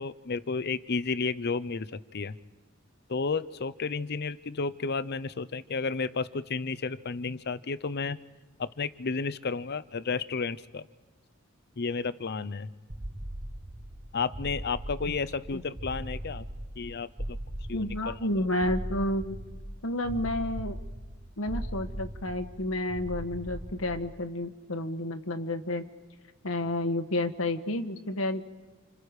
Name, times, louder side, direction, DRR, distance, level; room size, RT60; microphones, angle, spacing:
voice 1, 0.0-2.3 3.1-8.2 8.6-10.8 11.8-12.7 14.1-16.5 16.8-17.4 17.7-18.5, left 4 dB, 50° left, 16 dB, 0.7 m, -32 dB
sound 1, 12.9-24.3, right 1 dB, 25° right, 0.9 m, -39 dB
voice 2, 17.7-19.4 19.8-20.8 21.4-25.8 26.4-28.5, left 1 dB, 75° left, 7 dB, 1.5 m, -30 dB
29.5 x 28.0 x 4.9 m, 1.3 s
head